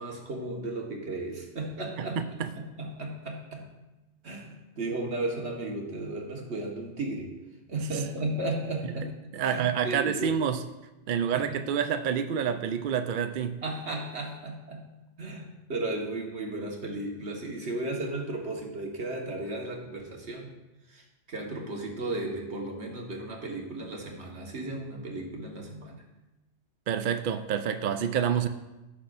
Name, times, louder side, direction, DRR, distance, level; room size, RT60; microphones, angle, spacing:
voice 1, 0.0-3.7 4.2-7.3 7.7-9.1 9.4-10.3 11.3-11.6 13.6-14.8 15.2-20.5 20.9-26.0, right 2 dB, 75° right, 0 dB, 1.8 m, -35 dB
voice 2, 2.0-2.5 7.9-8.0 8.8-8.9 9.3-10.6 11.1-13.6 26.9-28.5, right 8 dB, 60° right, 9 dB, 0.6 m, -28 dB
16.0 x 6.6 x 2.6 m, 1.0 s
omnidirectional pair, 1.1 m